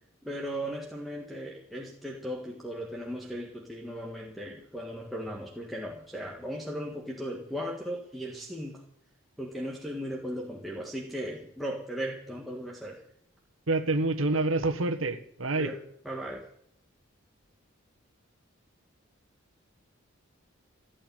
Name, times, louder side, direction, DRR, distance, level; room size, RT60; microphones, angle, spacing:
voice 1, 0.2-8.8 9.4-13.0 15.6-15.8 16.1-16.5, equal, ahead, -3 dB, 1.8 m, -37 dB
voice 2, 13.7-15.7, right 2 dB, 75° right, 7 dB, 1.6 m, -27 dB
15.5 x 8.6 x 9.1 m, 0.67 s
head